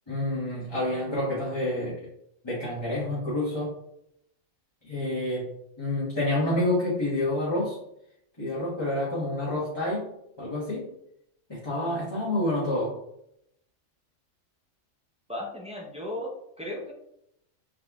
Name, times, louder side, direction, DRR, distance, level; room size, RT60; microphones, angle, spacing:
voice 1, 0.1-2.1 2.4-3.7 4.8-5.5 5.8-7.8 8.4-10.1 10.4-10.8 11.5-12.9, left 1 dB, 20° left, -9 dB, 1.2 m, -28 dB
voice 2, 15.3-16.9, left 1 dB, 5° right, -1 dB, 0.5 m, -36 dB
3.8 x 3.2 x 3.5 m, 0.76 s
omnidirectional pair, 1.4 m